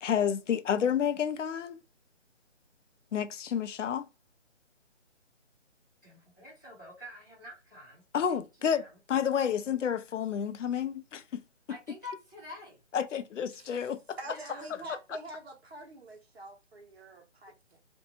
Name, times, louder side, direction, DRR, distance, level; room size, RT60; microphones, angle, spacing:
voice 1, 0.0-1.8 3.1-4.1 8.1-8.8 9.1-11.4 12.9-14.2, left 8 dB, 80° left, 0.5 m, -30 dB
voice 2, 6.0-8.0 8.3-9.0 11.7-12.8 14.2-14.7, left 2 dB, 15° left, 0.9 m, -47 dB
voice 3, 14.2-17.8, right 2 dB, 60° right, 1.0 m, -45 dB
2.6 x 2.2 x 2.8 m
hypercardioid pair, 180°, 36 cm